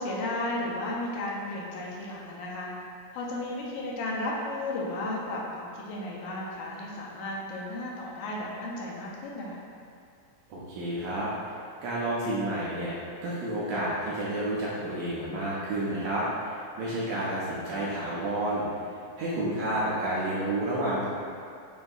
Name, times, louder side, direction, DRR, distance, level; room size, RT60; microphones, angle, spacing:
voice 1, 0.0-2.7 3.1-9.6 17.1-17.2, left 1 dB, 80° left, -4 dB, 2.0 m, -34 dB
voice 2, 10.5-11.3 11.8-13.0 13.2-18.7 19.2-21.1, right 1 dB, 80° right, -8 dB, 1.6 m, -30 dB
6.2 x 2.6 x 2.3 m, 2.3 s
omnidirectional pair, 3.5 m